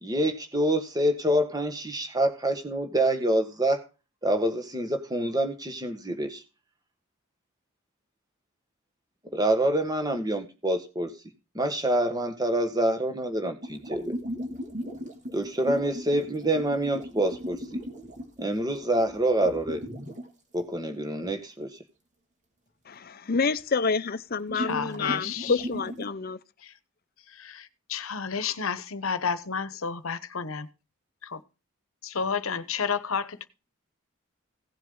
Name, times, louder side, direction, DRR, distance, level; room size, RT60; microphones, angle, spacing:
voice 1, 0.0-3.8 4.2-6.4 9.3-11.1 11.5-14.1 15.3-17.8 18.4-19.8 20.5-21.7, right 1 dB, 20° right, 1.7 m, -26 dB
sound 1, 13.6-20.3 23.6-23.7 24.5-26.1, equal, 35° right, 2.9 m, -37 dB
voice 2, 22.9-26.4, left 4 dB, 45° left, 0.7 m, -28 dB
voice 3, 24.5-25.5 27.9-30.7 31.2-31.4 32.0-33.5, left 6 dB, 75° left, 1.0 m, -31 dB
16.5 x 7.5 x 3.9 m
head